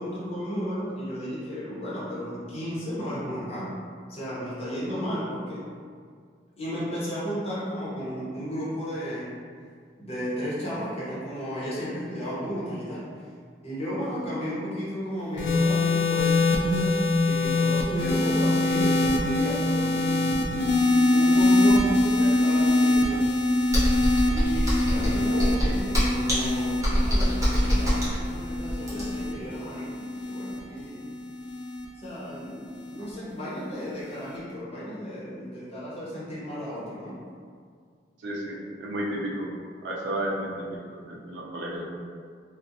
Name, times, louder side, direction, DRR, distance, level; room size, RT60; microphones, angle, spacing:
voice 1, 0.0-3.7 4.1-5.7 6.6-9.3 10.0-13.1 13.6-20.8 21.1-23.4 24.3-31.1 31.9-37.2, equal, 35° left, -9 dB, 0.8 m, -33 dB
sound 1, 15.4-31.9 32.8-33.1, left 2 dB, 65° left, 0.4 m, -24 dB
Computer keyboard, 23.7-29.3, equal, 20° right, 0.7 m, -24 dB
voice 2, 25.3-25.6 38.2-39.5 39.8-41.9, right 1 dB, 70° right, -3 dB, 0.4 m, -32 dB
2.4 x 2.0 x 2.6 m, 2.1 s
head